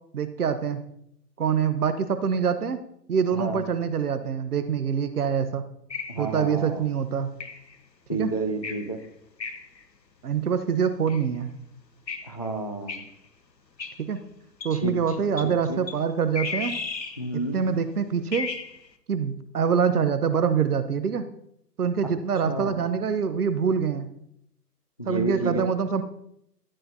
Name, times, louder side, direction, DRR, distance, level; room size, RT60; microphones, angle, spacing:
voice 1, 0.1-0.8 1.4-2.8 3.1-5.6 6.2-7.3 8.2-8.3 10.2-11.5 14.1-14.2 14.6-16.8 17.5-18.5 19.1-21.3 21.8-24.1 25.1-26.0, right 6 dB, 65° right, 11 dB, 1.1 m, -25 dB
sound 1, 5.9-6.4 7.4-7.8 8.6-9.1 9.4-9.8 11.1-11.2 12.1-12.3 12.9-13.1 13.8-14.0 14.6-14.8 15.4-15.5 15.9-16.0 16.4-17.3 18.3-18.9, left 4 dB, 85° left, 1.1 m, -34 dB
voice 2, 6.1-6.9 8.1-9.0 12.2-13.0 14.7-15.2 15.4-15.8 17.2-17.6 22.0-22.1 22.5-22.8 25.0-25.7, right 2 dB, 25° left, 6 dB, 0.4 m, -30 dB
13.5 x 8.0 x 2.8 m, 0.75 s
figure-of-eight pair, 130°, 49 cm